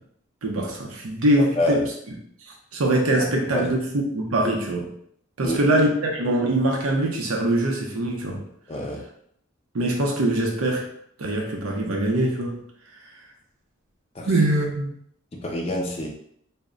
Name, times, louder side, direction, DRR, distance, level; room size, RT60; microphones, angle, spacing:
voice 1, 0.4-1.9 2.7-4.9 5.4-8.4 9.7-10.9 11.2-12.6 14.3-14.9, right 1 dB, 85° right, 0 dB, 0.6 m, -23 dB
voice 2, 5.4-5.8 8.7-9.0 14.2-14.3 15.3-16.1, left 1 dB, 30° left, -1 dB, 0.4 m, -26 dB
2.1 x 2.1 x 3.6 m, 0.68 s
head